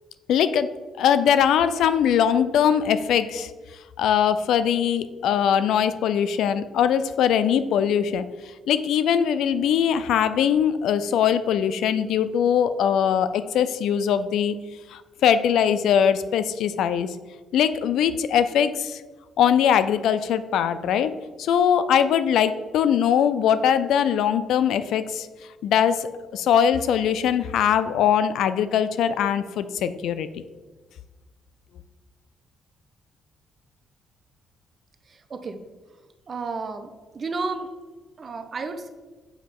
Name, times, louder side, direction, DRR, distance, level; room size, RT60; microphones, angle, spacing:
voice 1, 0.3-3.5 4.0-8.3 8.7-14.6 14.9-17.2 17.5-19.0 19.4-25.3 25.6-30.4, left 8 dB, 80° left, 13 dB, 0.4 m, -21 dB
voice 2, 35.1-35.6 36.3-37.7 38.2-38.9, right 4 dB, 40° right, 8 dB, 0.7 m, -32 dB
7.2 x 3.1 x 5.9 m, 1.3 s
cardioid pair, 90°, 0 cm